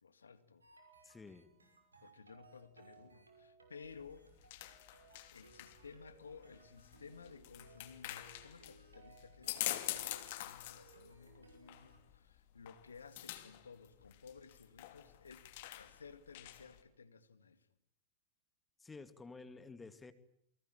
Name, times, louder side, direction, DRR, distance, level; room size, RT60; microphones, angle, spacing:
voice 1, 0.0-0.6 2.0-4.3 4.5-4.8 5.3-17.7, left 5 dB, 75° left, 2.0 m, -56 dB
sound 1, 0.6-12.0, right 4 dB, 80° right, 6.1 m, -64 dB
voice 2, 1.0-1.5 18.8-20.1, left 4 dB, 10° left, 2.2 m, -52 dB
sound 2, 3.8-16.8, left 15 dB, 50° left, 2.6 m, -46 dB
29.0 x 23.5 x 8.7 m
figure-of-eight pair, 90°, 0 cm